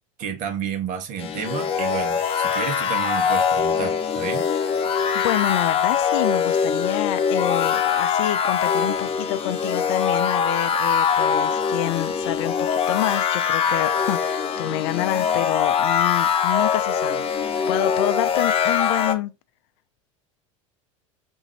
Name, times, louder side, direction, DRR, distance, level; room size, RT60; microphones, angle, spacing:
voice 1, 0.2-4.4, right 7 dB, 50° right, 1.1 m, -31 dB
sound 1, 1.2-19.1, left 7 dB, 35° left, 0.8 m, -22 dB
voice 2, 4.9-19.3, left 15 dB, 60° left, 0.4 m, -28 dB
3.7 x 2.7 x 3.1 m
hypercardioid pair, 85°, 17 cm